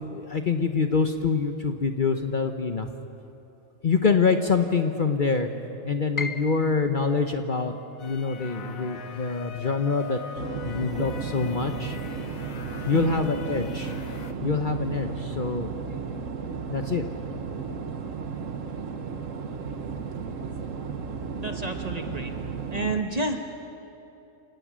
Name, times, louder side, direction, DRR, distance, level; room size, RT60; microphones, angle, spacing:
voice 1, 0.1-2.9 3.8-5.5 5.8-7.7 8.0-10.2 10.6-12.0 12.9-13.9 14.4-15.7 16.7-17.0, left 4 dB, 40° left, 6 dB, 1.0 m, -25 dB
Piano, 6.2-12.1 12.4-13.6 14.0-14.1 14.8-15.1, left 4 dB, 25° left, 0.5 m, -41 dB
sound 1, 8.0-14.3, left 6 dB, 90° left, 1.4 m, -43 dB
sound 2, 10.4-23.0, right 5 dB, 70° right, 1.5 m, -34 dB
voice 2, 21.3-22.3 22.7-23.5, right 2 dB, 30° right, 4 dB, 1.3 m, -30 dB
28.0 x 17.5 x 6.3 m, 2.8 s
omnidirectional pair, 1.4 m